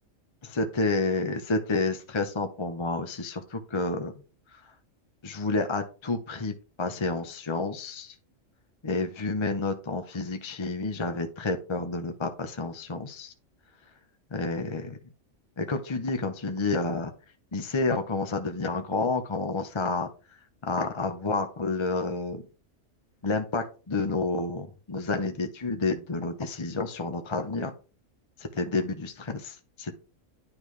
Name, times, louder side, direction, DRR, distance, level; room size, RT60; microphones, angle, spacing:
voice 1, 0.4-4.1 5.2-8.1 8.8-13.3 14.3-15.0 15.6-17.1 17.5-20.1 20.6-22.4 23.2-27.7 28.4-29.9, left 3 dB, 30° left, 6 dB, 0.7 m, -29 dB
9.8 x 5.2 x 3.2 m, 0.35 s
omnidirectional pair, 1.4 m